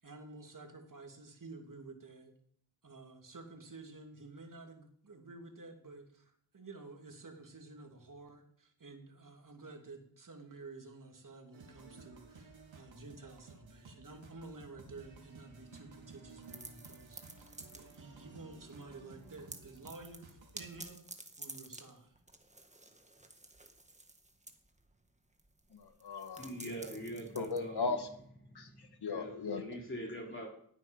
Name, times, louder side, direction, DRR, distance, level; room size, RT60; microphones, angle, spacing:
voice 1, 0.0-2.3 2.8-17.5 17.7-21.0 21.4-22.1, right 3 dB, 40° right, 3 dB, 3.1 m, -51 dB
sound 1, 11.5-20.8, right 3 dB, 70° right, 3.4 m, -56 dB
sound 2, 16.4-18.2 18.5-18.9 19.2-28.2, right 2 dB, 15° right, 1.7 m, -52 dB
voice 2, 25.7-26.5 27.3-28.1 28.5-29.6, left 4 dB, 55° left, 6 dB, 1.7 m, -37 dB
voice 3, 26.4-28.0 28.5-28.8 29.1-30.5, equal, 25° left, -1 dB, 3.3 m, -43 dB
18.0 x 9.0 x 5.4 m, 0.65 s
cardioid pair, 80°, 48 cm